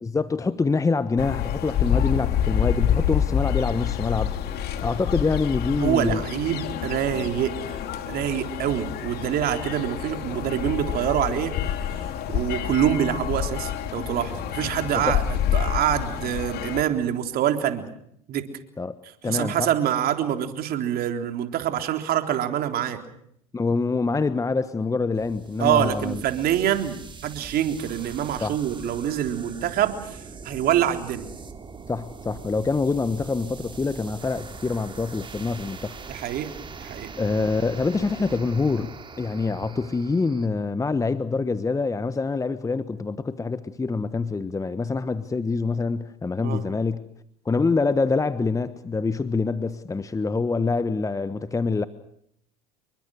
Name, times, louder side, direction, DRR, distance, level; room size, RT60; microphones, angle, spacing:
voice 1, 0.0-4.4 4.8-6.2 14.9-15.1 18.8-18.9 19.2-19.7 23.5-26.2 28.4-28.6 31.9-36.0 37.2-38.9 39.2-47.0 47.4-51.8, left 4 dB, 15° left, 13 dB, 1.2 m, -25 dB
sound 1, 1.2-16.8, left 10 dB, 55° left, 3.0 m, -27 dB
voice 2, 5.8-7.8 8.1-11.5 12.0-12.1 12.3-17.9 18.3-18.5 19.2-23.0 25.6-31.3 36.1-36.5 36.8-37.1 46.4-46.6, right 10 dB, 50° right, 6 dB, 3.7 m, -25 dB
sound 2, 25.1-40.5, right 5 dB, 25° right, 3.5 m, -42 dB
28.5 x 23.0 x 6.4 m, 0.71 s
hypercardioid pair, 80°, 20 cm